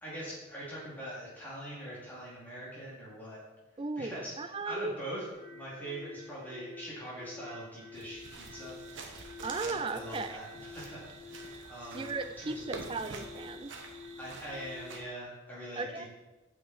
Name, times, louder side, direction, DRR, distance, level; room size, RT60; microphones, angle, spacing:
voice 1, 0.0-3.4 4.0-4.3 4.6-8.8 9.6-12.7 14.2-16.1, right 1 dB, 10° left, -8 dB, 2.7 m, -43 dB
voice 2, 3.8-5.0 9.4-10.4 11.9-13.7 15.8-16.0, right 3 dB, 25° right, 9 dB, 0.4 m, -36 dB
sound 1, 5.3-15.0, left 3 dB, 35° left, 2.3 m, -49 dB
sound 2, 7.9-15.0, right 3 dB, 70° right, 1.0 m, -47 dB
7.5 x 5.8 x 4.3 m, 1.1 s
head